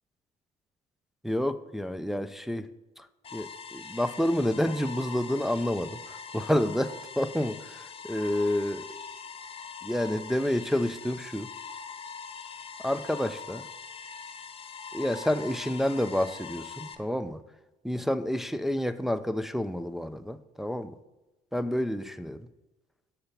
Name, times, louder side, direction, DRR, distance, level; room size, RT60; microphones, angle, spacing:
voice 1, 1.2-2.7 3.0-3.1 3.3-8.9 9.8-11.5 12.8-13.7 14.9-17.4 17.8-21.0 21.5-22.5, left 1 dB, ahead, 10 dB, 0.3 m, -29 dB
sound 1, 3.2-16.9, left 6 dB, 35° left, 0.8 m, -42 dB
6.6 x 5.8 x 5.7 m, 1.1 s
cardioid pair, 110°, 17 cm